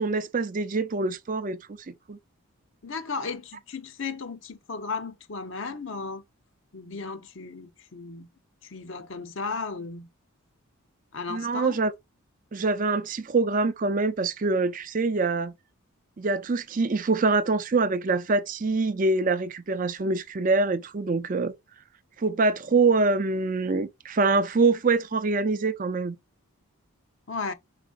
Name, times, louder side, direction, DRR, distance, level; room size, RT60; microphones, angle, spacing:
voice 1, 0.0-1.6 1.9-2.2 11.3-11.9 12.5-15.5 16.2-21.5 22.2-26.2, right 3 dB, 35° right, 0.4 m, -25 dB
voice 2, 2.8-6.2 6.7-8.3 8.6-10.1 11.1-11.8 27.3-27.5, left 4 dB, 60° left, 0.7 m, -35 dB
4.9 x 4.2 x 2.4 m
head